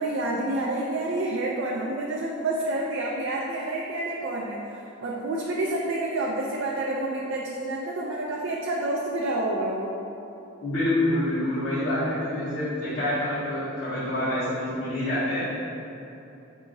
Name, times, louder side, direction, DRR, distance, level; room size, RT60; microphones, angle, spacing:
voice 1, 0.0-10.0, right 2 dB, 65° right, -3 dB, 0.4 m, -28 dB
voice 2, 10.6-15.4, left 1 dB, 65° left, -13 dB, 1.5 m, -27 dB
5.6 x 2.8 x 2.6 m, 2.9 s
head